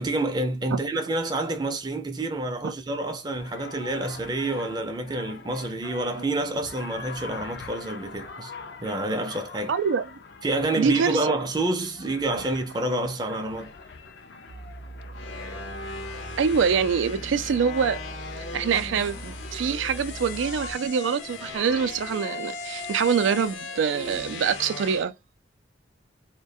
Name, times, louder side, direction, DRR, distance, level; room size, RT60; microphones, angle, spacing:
voice 1, 0.0-8.5 8.8-9.7 10.4-13.7, right 2 dB, 20° right, 0.4 m, -28 dB
sound 1, 3.3-20.7, left 4 dB, 60° left, 0.4 m, -44 dB
voice 2, 9.7-10.0 10.8-11.2 16.4-18.0 18.5-25.1, right 6 dB, 90° right, 0.4 m, -25 dB
sound 2, 14.5-20.7, right 2 dB, 55° right, 0.7 m, -41 dB
sound 3, 15.1-25.0, left 4 dB, 85° left, 0.8 m, -38 dB
2.3 x 2.2 x 2.6 m
head